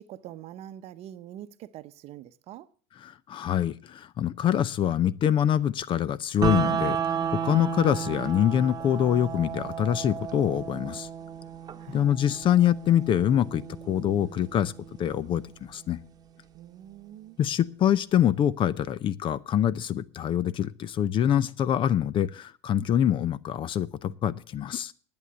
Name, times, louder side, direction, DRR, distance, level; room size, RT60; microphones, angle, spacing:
voice 1, 0.0-2.7 11.8-12.1 16.5-17.4, right 12 dB, 45° right, 0.8 m, -44 dB
voice 2, 3.0-11.1 11.9-14.7 15.0-16.0 17.4-24.9, left 10 dB, 35° left, 0.6 m, -25 dB
sound 1, 6.4-16.4, right 8 dB, 25° right, 1.2 m, -33 dB
11.0 x 8.8 x 7.8 m
hypercardioid pair, 95°, 15 cm